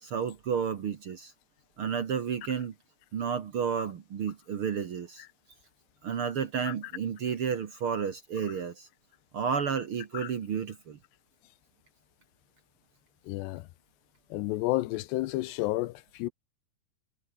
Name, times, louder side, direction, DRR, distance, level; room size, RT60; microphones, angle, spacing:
voice 1, 0.0-1.3 1.8-2.7 3.1-5.2 6.0-8.9 9.3-11.0, right 7 dB, 70° right, 1.3 m, -31 dB
voice 2, 13.3-13.7 14.3-16.3, left 18 dB, 90° left, 3.0 m, -31 dB
omnidirectional pair, 4.8 m